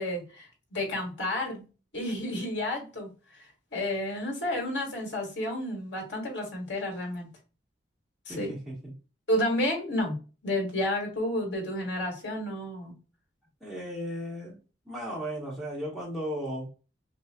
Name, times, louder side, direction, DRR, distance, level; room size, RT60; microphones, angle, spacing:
voice 1, 0.0-1.6 1.9-3.1 3.4-7.3 8.3-8.5 9.3-10.2 10.4-12.9, left 1 dB, 80° left, 0 dB, 1.9 m, -31 dB
voice 2, 8.3-8.9 13.6-14.6 14.8-16.7, equal, ahead, -6 dB, 1.5 m, -35 dB
6.1 x 2.5 x 2.3 m, 0.34 s
head